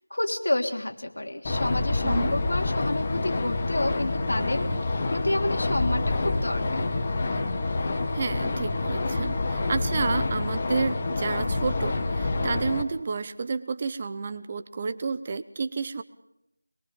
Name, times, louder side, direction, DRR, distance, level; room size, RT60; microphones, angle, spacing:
voice 1, 0.1-4.8 5.1-6.9, left 1 dB, 65° left, 4 dB, 3.2 m, -29 dB
sound 1, 1.4-12.8, left 2 dB, 25° left, 1.6 m, -27 dB
voice 2, 2.0-2.3 8.1-16.0, right 4 dB, 25° right, 12 dB, 0.7 m, -30 dB
23.0 x 22.5 x 5.3 m, 0.80 s
figure-of-eight pair, 170°, 0 cm